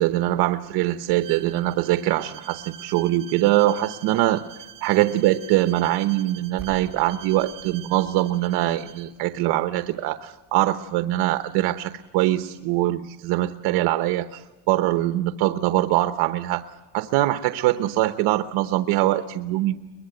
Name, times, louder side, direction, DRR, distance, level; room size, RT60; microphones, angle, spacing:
voice 1, 0.0-4.4 4.8-16.6 16.9-19.8, right 15 dB, 80° right, 10 dB, 1.0 m, -23 dB
Bowed string instrument, 1.2-9.1, right 11 dB, 55° right, 1.3 m, -45 dB
sound 1, 6.6-12.3, right 5 dB, 5° right, 7.7 m, -48 dB
23.5 x 21.5 x 7.9 m, 1.1 s
cardioid pair, 165°, 39 cm